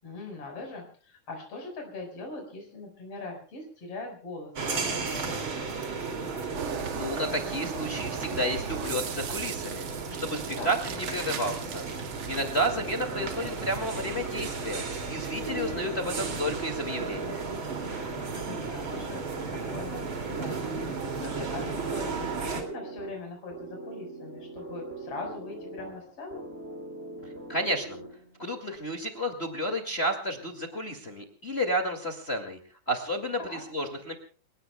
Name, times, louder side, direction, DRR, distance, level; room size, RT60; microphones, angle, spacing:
voice 1, 0.0-5.6 10.6-10.7 18.2-26.4 33.4-33.6, left 2 dB, 50° left, 2 dB, 5.9 m, -41 dB
sound 1, 4.6-22.6, right 4 dB, 45° right, 3.2 m, -34 dB
sound 2, 6.6-14.8, right 7 dB, 80° right, 3.2 m, -40 dB
voice 2, 6.9-9.9 10.2-11.9 12.3-17.5 27.5-28.0 28.4-32.6 32.9-34.1, equal, 20° left, 4 dB, 2.1 m, -31 dB
sound 3, 22.5-28.4, right 2 dB, 20° right, 5.9 m, -42 dB
30.0 x 17.5 x 2.3 m, 0.40 s
omnidirectional pair, 3.5 m